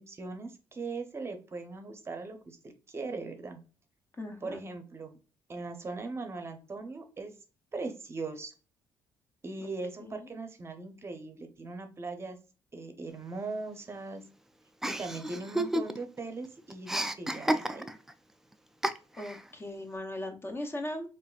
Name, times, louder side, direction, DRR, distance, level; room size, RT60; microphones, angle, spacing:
voice 1, 0.0-2.6 2.9-3.6 4.4-5.2 5.5-7.3 7.7-8.5 9.4-12.4 12.7-14.2 14.8-17.9, right 3 dB, 30° right, 6 dB, 0.7 m, -39 dB
voice 2, 4.2-4.6 10.0-10.3 19.2-21.1, left 1 dB, 25° left, 5 dB, 0.7 m, -38 dB
Chuckle chortle, 14.8-16.2 16.4-18.1 18.8-19.4, right 1 dB, 5° right, 0.3 m, -31 dB
4.0 x 2.5 x 2.3 m, 0.35 s
cardioid pair, 85°, 9 cm